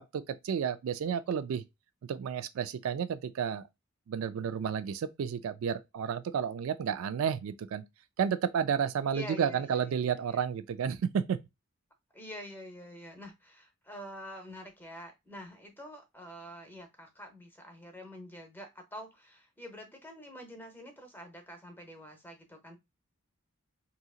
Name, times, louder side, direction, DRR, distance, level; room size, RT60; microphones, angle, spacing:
voice 1, 0.0-1.6 2.1-3.6 4.1-7.8 8.2-11.4, right 7 dB, 70° right, 0.3 m, -31 dB
voice 2, 9.1-9.8 10.3-10.4 12.1-22.8, equal, 10° left, 0.7 m, -46 dB
3.8 x 2.8 x 2.3 m
head